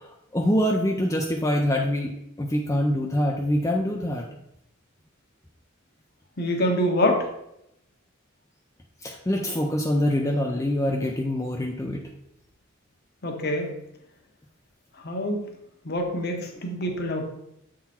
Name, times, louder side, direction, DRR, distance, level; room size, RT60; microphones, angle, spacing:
voice 1, 0.0-2.1 2.4-4.3 9.0-12.0, left 1 dB, 15° left, 1 dB, 0.5 m, -25 dB
voice 2, 6.4-7.3 13.2-13.7 15.0-15.4 15.8-17.2, left 1 dB, 50° left, 2 dB, 1.1 m, -25 dB
7.3 x 3.8 x 4.3 m, 0.81 s
head